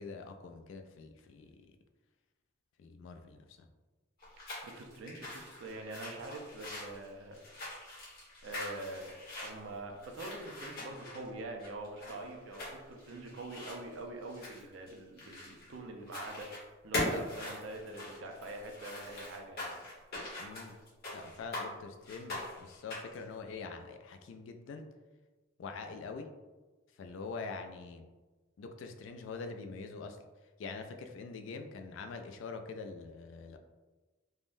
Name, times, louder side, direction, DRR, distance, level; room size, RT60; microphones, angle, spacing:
voice 1, 0.0-1.7 2.8-3.7 17.0-17.3 20.4-20.7 21.1-24.9 25.6-26.3 27.0-28.0 28.6-30.2 30.6-33.6, left 4 dB, 65° left, 6 dB, 0.3 m, -44 dB
sound 1, 4.2-15.8 16.1-16.6 16.9-21.7 22.0-23.2, left 1 dB, 50° left, 1.2 m, -42 dB
voice 2, 4.4-7.4 8.4-9.1 9.4-16.5 16.8-19.8, right 2 dB, 70° right, 2 dB, 0.4 m, -44 dB
3.5 x 2.1 x 2.5 m, 1.2 s
head